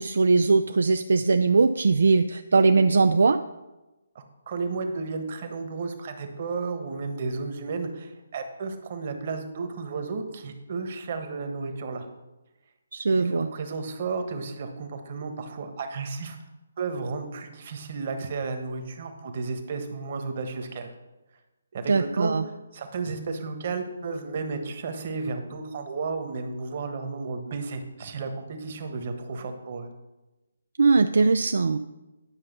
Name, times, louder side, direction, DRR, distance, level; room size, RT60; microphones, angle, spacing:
voice 1, 0.0-3.4 12.9-13.5 21.9-22.4 30.8-31.8, right 4 dB, 65° right, 9 dB, 0.4 m, -20 dB
voice 2, 4.1-12.0 13.1-16.4 16.8-20.9 21.7-29.9, right 4 dB, 45° right, 6 dB, 1.3 m, -33 dB
10.0 x 5.4 x 5.4 m, 1.1 s
figure-of-eight pair, 145°, 0 cm